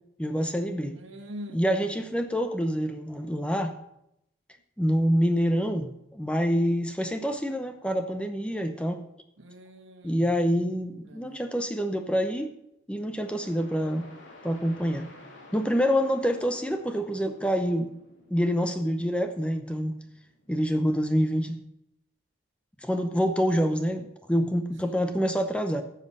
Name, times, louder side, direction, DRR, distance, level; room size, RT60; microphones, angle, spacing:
voice 1, 0.2-1.0 1.5-3.8 4.8-9.0 10.0-12.5 12.9-14.1 14.4-15.1 15.5-17.9 18.3-19.9 20.5-21.6 22.8-25.8, equal, 5° left, 6 dB, 0.7 m, -26 dB
voice 2, 0.9-2.0 9.4-10.3 11.0-11.4 24.8-25.1, equal, 80° right, 5 dB, 1.5 m, -44 dB
sound 1, 13.1-20.6, left 2 dB, 75° left, 2.8 m, -52 dB
13.0 x 7.5 x 5.4 m, 0.81 s
head